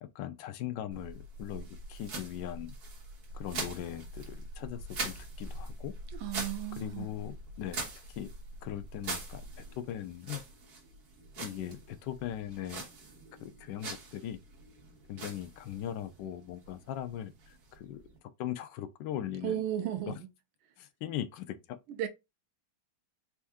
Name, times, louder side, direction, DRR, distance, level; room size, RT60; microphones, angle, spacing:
voice 1, 0.0-2.8 3.3-5.9 6.8-7.8 8.2-8.3 8.6-10.4 11.4-12.8 13.4-14.4 15.1-17.3 17.7-18.0 18.4-19.6 20.1-20.2 20.8-21.8, left 11 dB, 70° left, 1.1 m, -39 dB
sound 1, 0.9-18.2, right 2 dB, 50° right, 1.7 m, -43 dB
voice 2, 6.1-7.1 19.4-20.3 21.9-22.1, right 11 dB, 75° right, 1.3 m, -35 dB
4.5 x 2.6 x 3.5 m
omnidirectional pair, 2.3 m